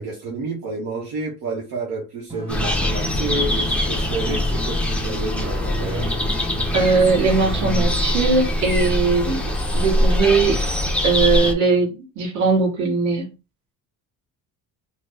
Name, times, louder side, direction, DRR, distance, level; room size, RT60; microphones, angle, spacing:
voice 1, 0.0-6.2, right 2 dB, 70° right, 1.1 m, -30 dB
sound 1, 2.3-7.9, right 2 dB, 15° right, 1.2 m, -32 dB
sound 2, 2.5-11.5, left 1 dB, 5° left, 0.5 m, -23 dB
voice 2, 6.7-9.4 9.7-10.6 11.0-13.3, right 4 dB, 55° right, 1.6 m, -20 dB
3.0 x 2.1 x 3.5 m
cardioid pair, 140°, 36 cm